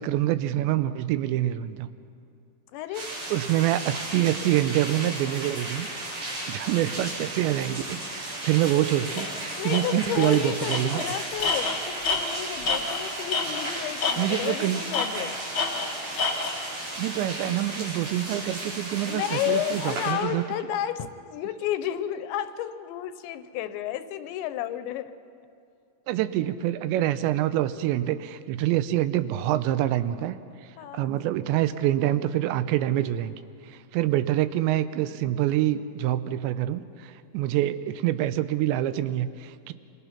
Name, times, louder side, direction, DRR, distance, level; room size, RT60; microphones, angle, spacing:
voice 1, 0.0-1.9 3.3-5.9 6.2-9.3 9.6-11.0 14.2-14.8 17.0-20.4 26.1-30.4 30.9-33.4 33.7-39.7, right 13 dB, 85° right, 13 dB, 3.0 m, -26 dB
voice 2, 2.7-3.1 9.6-15.4 19.1-25.2 30.8-31.1 34.1-34.2, left 11 dB, 85° left, 12 dB, 3.1 m, -32 dB
sound 1, 2.9-20.1, right 1 dB, 55° right, 7.2 m, -35 dB
Tools, 9.2-9.3 9.7-9.8 10.2-10.4 10.7-13.7 14.0-14.5 14.9-16.6, left 4 dB, 60° left, 1.3 m, -28 dB
27.0 x 23.5 x 5.9 m, 2.4 s
omnidirectional pair, 5.1 m